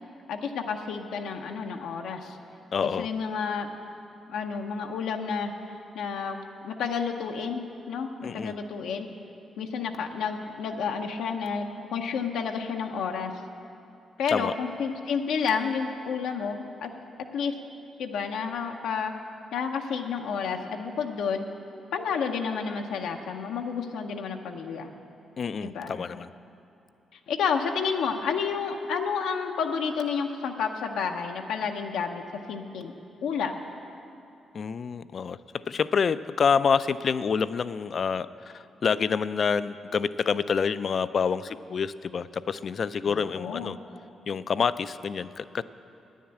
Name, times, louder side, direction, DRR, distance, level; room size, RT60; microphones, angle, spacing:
voice 1, 0.3-2.4 2.8-3.7 4.3-5.5 5.9-6.4 6.6-9.1 9.6-13.3 14.2-16.9 17.3-17.5 18.0-19.1 19.5-21.4 21.9-24.9 25.6-26.0 27.3-32.2 32.5-32.9 33.2-33.6 43.1-43.7, left 6 dB, 85° left, 3 dB, 0.6 m, -30 dB
voice 2, 2.7-3.1 8.2-8.5 14.3-14.5 25.4-26.3 34.5-35.4 35.7-38.3 38.8-43.8 44.3-45.6, left 6 dB, 55° left, 15 dB, 0.3 m, -27 dB
9.5 x 7.3 x 8.6 m, 2.8 s
cardioid pair, 70°, 0 cm